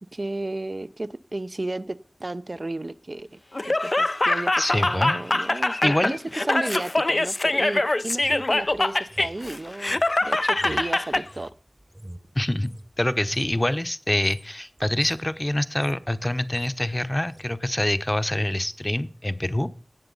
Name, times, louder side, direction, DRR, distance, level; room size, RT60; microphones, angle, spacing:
voice 1, 0.1-3.4 3.6-11.5, right 2 dB, 55° right, 12 dB, 0.6 m, -33 dB
Laughter, 3.5-11.2, left 2 dB, 50° left, 0.4 m, -24 dB
voice 2, 4.6-5.2 5.8-6.1 12.3-12.7 13.0-19.8, left 1 dB, 25° left, 12 dB, 0.8 m, -25 dB
sound 1, 8.1-12.9 13.2-13.6 14.1-14.4 14.8-15.2 15.5-16.1 16.3-16.7 17.3-17.5, right 1 dB, 20° right, 0.9 m, -45 dB
17.5 x 7.0 x 4.0 m, 0.37 s
wide cardioid pair, 45°, 0 cm